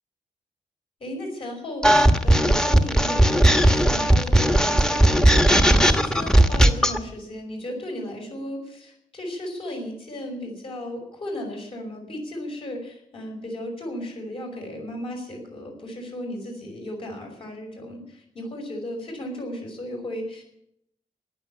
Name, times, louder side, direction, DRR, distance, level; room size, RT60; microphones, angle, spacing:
voice 1, 1.0-20.4, left 1 dB, 45° left, 1 dB, 5.5 m, -35 dB
sound 1, 1.8-7.0, right 1 dB, 5° left, 1.2 m, -17 dB
15.0 x 11.0 x 8.5 m, 0.74 s
wide cardioid pair, 145°, 13 cm